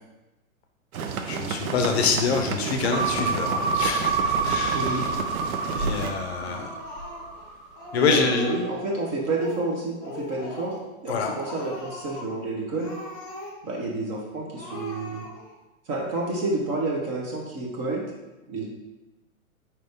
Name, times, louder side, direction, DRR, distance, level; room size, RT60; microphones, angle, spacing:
sound 1, 0.9-6.1, right 6 dB, 85° right, 0.6 m, -32 dB
voice 1, 1.3-5.1 5.7-6.7 7.9-8.5 11.1-11.4, left 5 dB, 50° left, 4 dB, 0.6 m, -26 dB
sound 2, 2.9-7.6 8.0-8.1, right 4 dB, 55° right, 0.8 m, -28 dB
voice 2, 4.7-5.0 6.4-6.5 7.9-10.8 11.0-12.9 13.6-15.3 15.9-18.0 18.5-18.7, right 2 dB, 25° right, -2 dB, 0.5 m, -29 dB
Speech, 6.5-7.4 7.8-8.9 9.2-9.7 10.0-10.9 11.1-12.3 12.7-13.8 14.1-14.2 14.6-15.6, left 2 dB, 20° left, 0.7 m, -40 dB
4.3 x 2.6 x 3.5 m, 1.0 s
hypercardioid pair, 130°, 42 cm